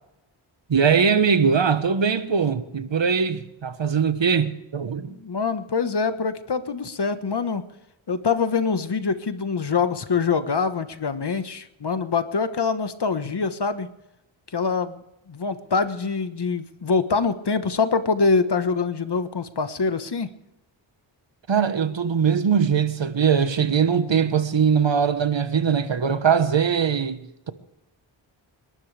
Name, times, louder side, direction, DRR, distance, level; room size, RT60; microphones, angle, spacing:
voice 1, 0.7-5.2 21.5-27.5, right 6 dB, 60° right, 1.3 m, -21 dB
voice 2, 5.0-7.6 8.1-13.9 14.5-15.0 15.3-20.3, left 5 dB, 55° left, 1.4 m, -24 dB
29.5 x 12.5 x 3.4 m
cardioid pair, 55°, 49 cm